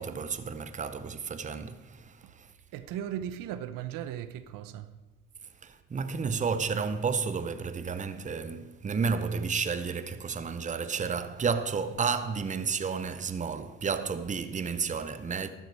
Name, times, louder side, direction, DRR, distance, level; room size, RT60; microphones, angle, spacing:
voice 1, 0.0-2.5 5.6-15.5, right 5 dB, 25° right, 0.8 m, -31 dB
voice 2, 2.7-4.9, right 10 dB, 80° right, 0.9 m, -37 dB
13.0 x 9.4 x 4.7 m
cardioid pair, 100°, 33 cm